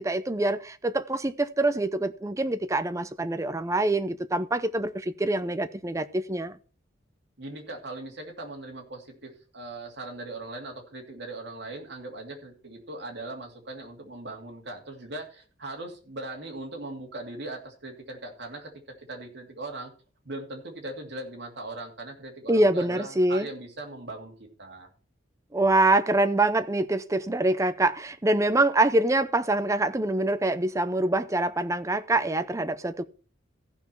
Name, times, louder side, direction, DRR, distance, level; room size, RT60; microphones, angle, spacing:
voice 1, 0.0-6.5 22.5-23.5 25.5-33.0, right 2 dB, 15° right, 0.5 m, -25 dB
voice 2, 7.4-18.7 19.1-19.9 20.2-24.3 24.6-24.9, right 2 dB, 60° right, 2.6 m, -39 dB
15.0 x 5.9 x 4.5 m
head